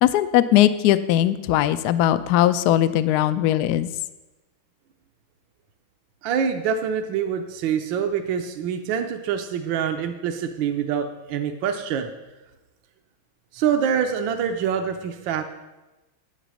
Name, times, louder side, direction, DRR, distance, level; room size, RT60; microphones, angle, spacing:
voice 1, 0.0-3.9, left 12 dB, 75° left, 13 dB, 0.9 m, -19 dB
voice 2, 6.2-12.1 13.5-15.4, right 7 dB, 75° right, 5 dB, 1.4 m, -25 dB
10.0 x 8.1 x 6.3 m, 1.1 s
omnidirectional pair, 2.2 m